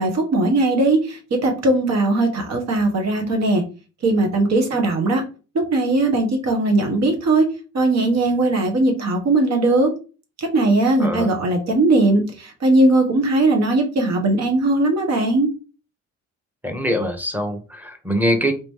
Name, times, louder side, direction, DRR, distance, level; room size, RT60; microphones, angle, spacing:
voice 1, 0.0-3.6 4.0-5.2 5.5-7.5 7.7-9.9 10.4-15.5, right 2 dB, 60° right, 3 dB, 1.5 m, -19 dB
voice 2, 11.0-11.3 16.6-18.5, equal, 5° right, 4 dB, 1.2 m, -23 dB
4.0 x 2.9 x 3.6 m, 0.34 s
cardioid pair, 90°, 30 cm